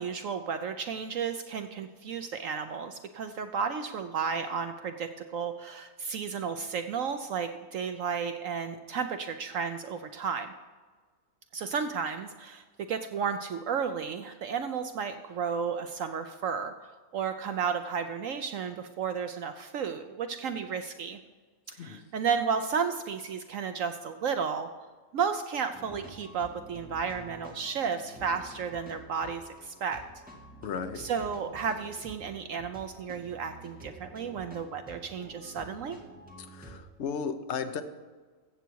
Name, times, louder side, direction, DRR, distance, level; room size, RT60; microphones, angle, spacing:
voice 1, 0.0-10.5 11.5-21.2 21.8-24.7 25.1-30.0 31.0-36.0, right 6 dB, 65° right, 8 dB, 1.0 m, -33 dB
sound 1, 25.7-36.8, right 1 dB, 5° right, 2.0 m, -49 dB
voice 2, 30.6-31.0 36.4-37.8, left 6 dB, 55° left, 8 dB, 1.1 m, -35 dB
14.5 x 8.2 x 4.6 m, 1.4 s
omnidirectional pair, 1.6 m